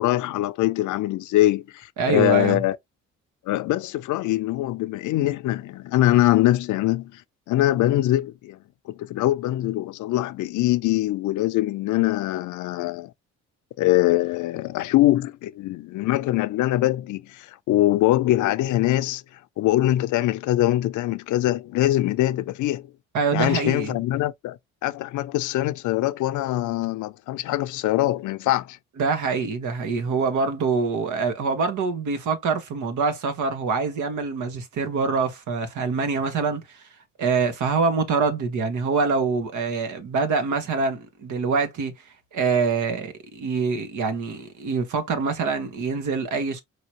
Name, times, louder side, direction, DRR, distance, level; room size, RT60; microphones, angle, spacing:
voice 1, 0.0-2.8 3.5-7.2 7.5-8.6 8.9-13.1 13.8-19.2 19.6-22.9 23.3-28.8, left 15 dB, 80° left, 0.5 m, -23 dB
voice 2, 2.0-2.6 23.1-23.9 29.0-36.8 37.2-41.9 42.3-46.6, right 4 dB, 75° right, 1.5 m, -25 dB
4.9 x 3.0 x 3.0 m
cardioid pair, 90°, 30 cm